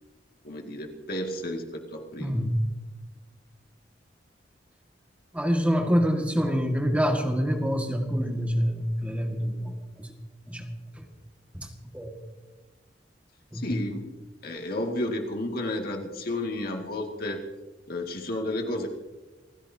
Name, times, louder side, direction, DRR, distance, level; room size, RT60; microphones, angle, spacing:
voice 1, 0.4-2.4 13.5-14.1 14.4-17.4 17.9-18.9, left 1 dB, 55° left, 2 dB, 2.3 m, -32 dB
voice 2, 2.2-2.6 5.3-10.1 10.5-10.7 11.0-11.1 11.5-11.7 11.9-12.1 13.5-13.7, equal, 10° right, 2 dB, 1.8 m, -26 dB
29.0 x 16.0 x 2.8 m, 1.2 s
head